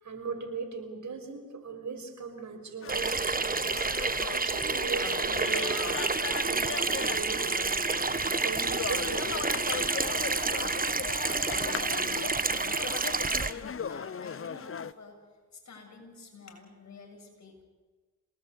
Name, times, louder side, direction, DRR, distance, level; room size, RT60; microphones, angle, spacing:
voice 1, 0.0-3.8 4.2-7.6 8.2-10.2, right 5 dB, 60° right, 4 dB, 5.7 m, -39 dB
sound 1, 2.8-14.9, left 7 dB, 40° left, 0.9 m, -38 dB
Water tap faucet / Sink (filling or washing), 2.9-13.5, right 4 dB, 25° right, 1.3 m, -29 dB
voice 2, 13.4-15.2 15.5-17.6, left 4 dB, 55° left, 3 dB, 7.0 m, -50 dB
27.0 x 19.0 x 8.4 m, 1.4 s
supercardioid pair, 45°, 33 cm